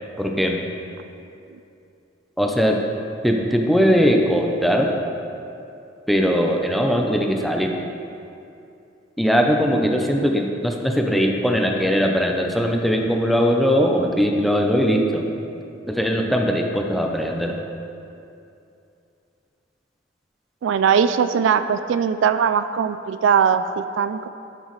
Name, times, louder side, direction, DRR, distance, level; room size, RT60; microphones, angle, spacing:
voice 1, 0.2-0.6 2.4-2.8 3.2-4.9 6.1-7.7 9.2-15.3 15.9-17.6, equal, ahead, 1 dB, 0.6 m, -20 dB
voice 2, 20.6-24.3, right 7 dB, 70° right, 11 dB, 0.3 m, -20 dB
12.0 x 6.1 x 3.2 m, 2.6 s
head